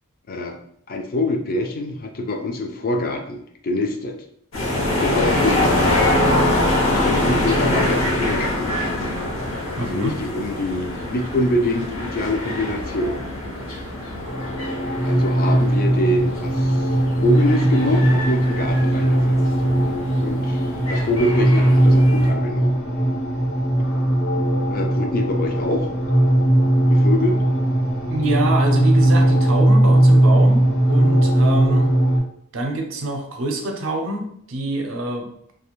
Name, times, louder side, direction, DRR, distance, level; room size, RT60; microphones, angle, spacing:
voice 1, 0.9-4.2 4.8-5.8 6.9-8.9 9.8-13.2 15.0-16.9 17.2-19.4 20.2-22.8 24.7-25.9 26.9-27.4, left 1 dB, 45° left, 4 dB, 0.4 m, -25 dB
sound 1, 4.5-22.3, left 1 dB, 60° left, 0.7 m, -24 dB
voice 2, 9.8-10.2 28.1-31.9 32.5-35.3, right 2 dB, 65° right, 3 dB, 0.5 m, -25 dB
sound 2, 14.2-32.2, right 1 dB, 90° left, 1.0 m, -18 dB
2.4 x 2.2 x 2.9 m, 0.68 s
head